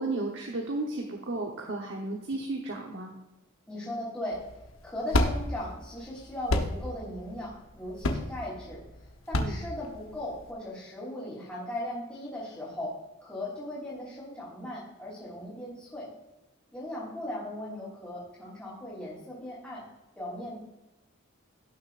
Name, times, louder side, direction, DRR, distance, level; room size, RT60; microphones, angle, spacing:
voice 1, 0.0-3.1 9.4-9.6, right 2 dB, 60° right, 1 dB, 1.1 m, -33 dB
voice 2, 3.7-4.4 4.8-8.8 9.3-12.9 13.2-16.1 16.7-19.8 20.2-20.5, left 1 dB, 10° left, -10 dB, 3.6 m, -38 dB
sound 1, 4.3-10.5, left 1 dB, 75° left, 1.0 m, -30 dB
17.0 x 6.7 x 2.5 m, 1.0 s
head